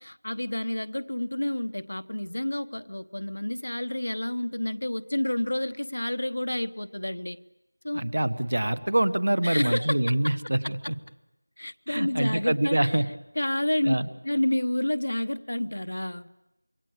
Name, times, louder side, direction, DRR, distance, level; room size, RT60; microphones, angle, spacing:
voice 1, 0.0-7.4 7.8-8.0 9.4-10.1 11.6-12.9 13.4-13.9 14.2-16.3, left 1 dB, 55° left, 11 dB, 1.1 m, -29 dB
voice 2, 7.9-10.9 11.9-13.1 13.8-14.1, right 1 dB, 45° right, 13 dB, 1.4 m, -25 dB
27.0 x 23.5 x 8.4 m, 0.92 s
figure-of-eight pair, 180°, 0 cm